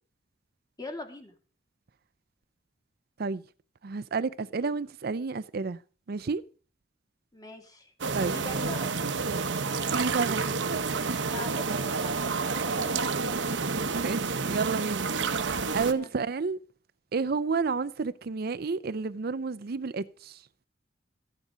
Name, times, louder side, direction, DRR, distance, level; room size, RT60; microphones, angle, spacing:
voice 1, 0.8-1.3 7.3-7.9 8.2-9.2 11.2-13.4 15.9-16.1, left 2 dB, 20° left, 2.6 m, -43 dB
voice 2, 3.8-5.8 6.1-6.4 8.1-8.4 9.9-10.6 10.9-11.2 13.9-15.1 15.7-16.6 17.1-20.4, right 4 dB, 55° right, 0.5 m, -30 dB
sound 1, 8.0-15.9, right 4 dB, 85° right, 1.0 m, -29 dB
14.0 x 10.0 x 5.1 m
head